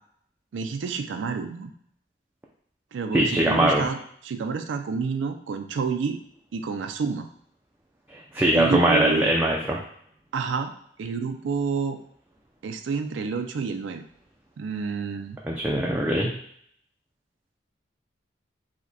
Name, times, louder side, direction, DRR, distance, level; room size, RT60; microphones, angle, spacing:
voice 1, 0.5-1.7 2.9-6.2 6.5-7.3 8.5-9.3 10.3-10.7 11.0-12.0 12.6-14.1 14.6-15.4, right 5 dB, 90° right, 7 dB, 0.4 m, -29 dB
voice 2, 3.1-3.8 8.3-9.8 15.4-16.3, right 1 dB, 10° right, -2 dB, 0.3 m, -21 dB
4.9 x 2.2 x 4.0 m, 0.67 s
head